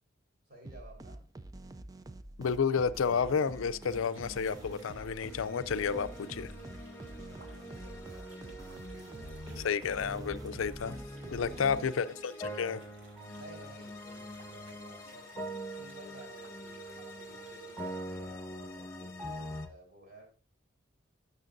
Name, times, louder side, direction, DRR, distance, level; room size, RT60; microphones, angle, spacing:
voice 1, 0.5-1.3 6.9-8.6 8.8-9.3 11.1-12.0 13.3-15.3 15.6-20.3, right 2 dB, 50° right, 4.3 m, -55 dB
sound 1, 0.6-12.2, right 1 dB, 20° right, 0.4 m, -48 dB
voice 2, 2.4-6.5 9.6-11.0 11.3-12.8, left 6 dB, 90° left, 0.5 m, -31 dB
sound 2, 2.9-19.7, equal, 15° left, 1.4 m, -44 dB
sound 3, 3.9-17.9, right 2 dB, 80° right, 2.9 m, -59 dB
12.0 x 6.8 x 2.6 m
head